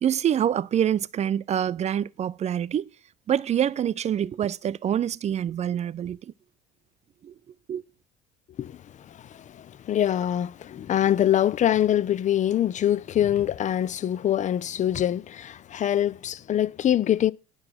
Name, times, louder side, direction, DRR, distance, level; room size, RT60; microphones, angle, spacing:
voice 1, 0.0-2.9 3.3-6.3 7.2-7.3 7.7-7.8, right 9 dB, 35° right, 0.5 m, -26 dB
voice 2, 8.6-17.3, left 11 dB, 35° left, 0.6 m, -24 dB
9.6 x 5.2 x 6.0 m
hypercardioid pair, 65°, 21 cm